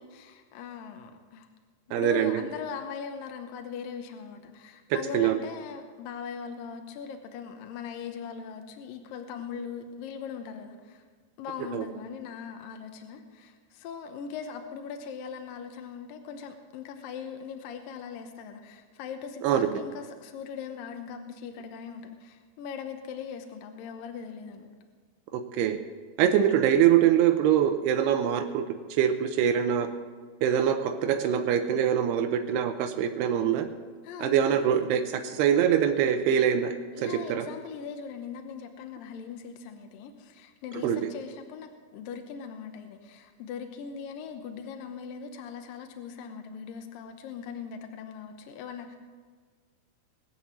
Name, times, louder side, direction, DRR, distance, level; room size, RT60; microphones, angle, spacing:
voice 1, 0.0-1.5 2.0-11.0 11.4-24.8 26.2-26.5 34.0-34.6 36.9-49.0, left 6 dB, 70° left, 5 dB, 2.4 m, -40 dB
voice 2, 1.9-2.4 4.9-5.4 11.7-11.8 19.4-19.7 25.3-25.8 26.2-28.7 28.9-29.9 30.4-33.7 34.2-37.5 40.8-41.1, right 9 dB, 85° right, 6 dB, 2.8 m, -24 dB
21.0 x 7.3 x 7.4 m, 1.5 s
omnidirectional pair, 4.6 m